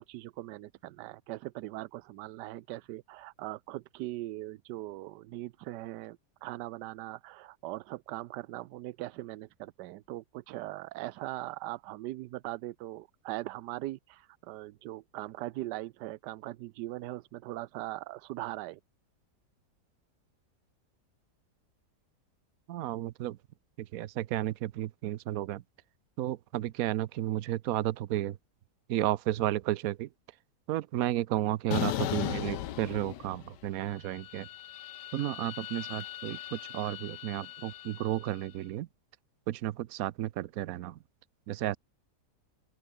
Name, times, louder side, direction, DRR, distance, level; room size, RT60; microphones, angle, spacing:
voice 1, 0.0-18.8, right 16 dB, 85° right, 1.2 m, -40 dB
voice 2, 22.7-23.4 23.8-25.6 26.2-28.4 28.9-30.1 30.7-34.5 35.1-38.9 39.5-41.0 41.5-41.8, right 14 dB, 65° right, 1.0 m, -32 dB
sound 1, 31.7-33.7 34.0-38.3, left 13 dB, 80° left, 1.4 m, -38 dB
open air
omnidirectional pair, 1.8 m